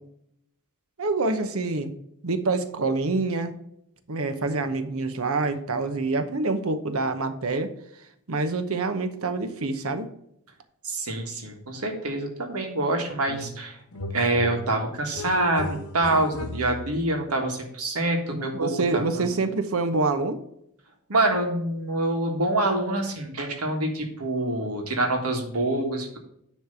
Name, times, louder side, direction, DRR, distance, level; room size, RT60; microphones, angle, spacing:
voice 1, 1.0-1.9 2.2-3.5 4.1-7.7 8.3-10.1 18.3-20.4, right 3 dB, 70° right, 9 dB, 0.9 m, -26 dB
voice 2, 10.8-13.7 14.1-19.2 21.1-26.2, right 2 dB, 85° right, 2 dB, 1.5 m, -26 dB
sound 1, 13.3-13.7 13.9-17.0, left 1 dB, 80° left, 0.9 m, -36 dB
9.8 x 3.3 x 6.7 m, 0.74 s
head